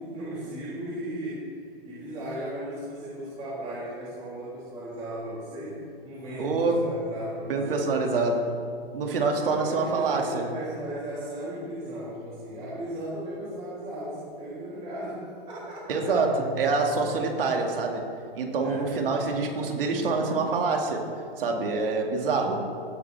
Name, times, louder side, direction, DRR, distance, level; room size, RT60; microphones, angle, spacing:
voice 1, 0.0-1.4 1.8-5.7 6.0-8.3 9.4-16.2 18.6-19.0, right 1 dB, 20° right, -11 dB, 3.2 m, -36 dB
voice 2, 6.4-6.8 7.5-8.6 8.9-10.5 15.9-18.0 18.3-21.1 21.4-22.7, right 3 dB, 65° right, 2 dB, 2.3 m, -26 dB
17.0 x 10.5 x 3.5 m, 2.2 s
hypercardioid pair, 160°, 31 cm